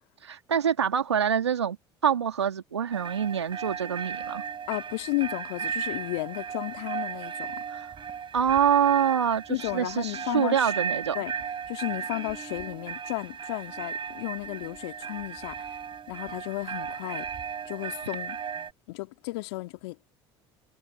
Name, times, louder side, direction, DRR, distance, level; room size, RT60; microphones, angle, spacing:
voice 1, 0.3-1.8 2.0-4.4 7.7-7.9 8.3-11.2, right 8 dB, 90° right, 2.1 m, -25 dB
sound 1, 2.9-18.7, right 7 dB, 35° right, 5.1 m, -36 dB
voice 2, 4.7-7.7 9.5-10.7 11.1-11.3 11.7-15.8 16.1-17.3 17.7-18.4 18.9-20.1, left 23 dB, 70° left, 2.1 m, -33 dB
hypercardioid pair, 65°, 14 cm